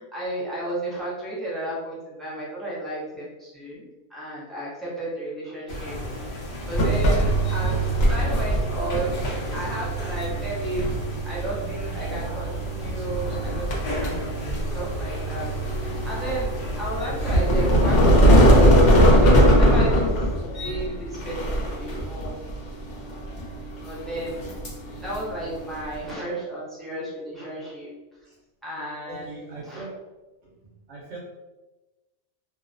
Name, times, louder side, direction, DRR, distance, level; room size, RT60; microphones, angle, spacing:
voice 1, 0.0-6.0 6.7-10.9 11.2-15.5 15.8-20.2 20.6-22.3 23.8-24.5 25.0-27.9 28.6-29.9, right 1 dB, ahead, -7 dB, 0.5 m, -33 dB
sound 1, 5.7-18.8, left 1 dB, 55° left, 0.9 m, -34 dB
sound 2, 6.7-26.1, equal, 80° left, 1.0 m, -22 dB
voice 2, 29.1-30.0 30.4-30.5 30.9-31.2, right 3 dB, 75° right, -4 dB, 0.9 m, -40 dB
2.6 x 2.1 x 2.5 m, 1.1 s
omnidirectional pair, 1.2 m